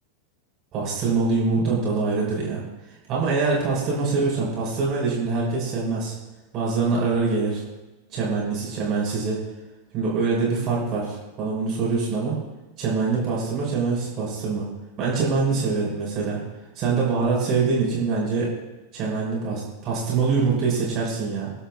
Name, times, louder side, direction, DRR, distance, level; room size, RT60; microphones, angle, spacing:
voice 1, 0.7-2.6 3.1-6.1 6.5-7.6 8.1-9.4 9.9-12.4 12.8-14.6 15.0-16.4 16.8-18.5 18.9-21.5, right 4 dB, 35° right, -4 dB, 5.3 m, -24 dB
24.0 x 11.0 x 2.4 m, 1.1 s
figure-of-eight pair, 90°, 0 cm